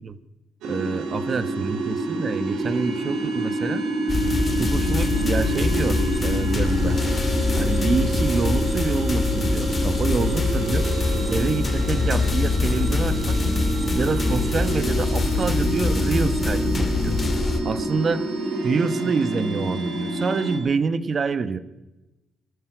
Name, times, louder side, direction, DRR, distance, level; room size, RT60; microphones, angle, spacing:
sound 1, 0.6-20.6, right 1 dB, 85° right, 3.8 m, -27 dB
voice 1, 0.7-3.8 4.6-7.0 7.6-10.9 11.3-13.4 13.9-17.2 17.6-18.3 18.6-21.6, right 5 dB, 45° right, 13 dB, 1.2 m, -26 dB
sound 2, 4.1-17.6, left 3 dB, 30° left, 2.0 m, -24 dB
19.5 x 13.0 x 5.1 m, 1.0 s
cardioid pair, 90°, 0 cm